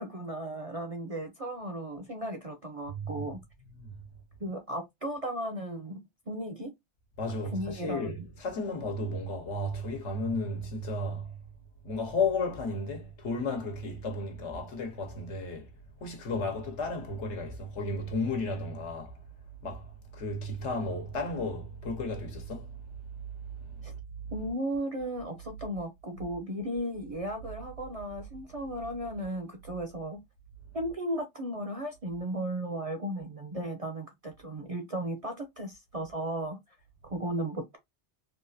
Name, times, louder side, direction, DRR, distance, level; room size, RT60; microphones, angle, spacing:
voice 1, 0.0-3.4 4.4-6.0 6.3-6.7 7.5-8.1 23.8-23.9 24.3-30.2 30.7-36.6 37.0-37.8, right 1 dB, 45° right, 0.5 m, -35 dB
voice 2, 2.9-3.3 3.7-4.0 7.2-11.4 11.8-15.7 16.0-19.2 19.6-22.8 23.6-23.9 24.3-24.5, left 2 dB, 80° left, 1.2 m, -34 dB
3.5 x 2.4 x 2.6 m
omnidirectional pair, 1.2 m